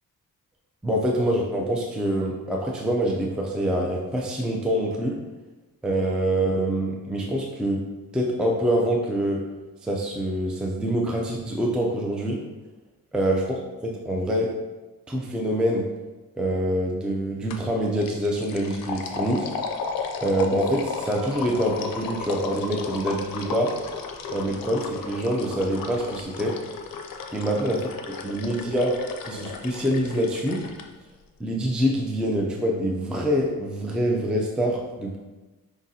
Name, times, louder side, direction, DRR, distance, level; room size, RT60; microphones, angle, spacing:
voice 1, 0.8-5.2 5.8-7.8 8.1-9.4 9.8-12.4 13.1-13.4 13.8-14.5 15.1-15.8 16.3-19.5 20.2-23.7 24.3-26.5 27.3-27.8 28.1-28.9 29.2-30.6 31.4-35.2, right 1 dB, 5° right, -1 dB, 0.4 m, -25 dB
sound 1, 17.5-17.7 18.0-30.8, left 5 dB, 70° left, 0.5 m, -34 dB
4.9 x 3.8 x 2.7 m, 1.2 s
wide cardioid pair, 135°, 35 cm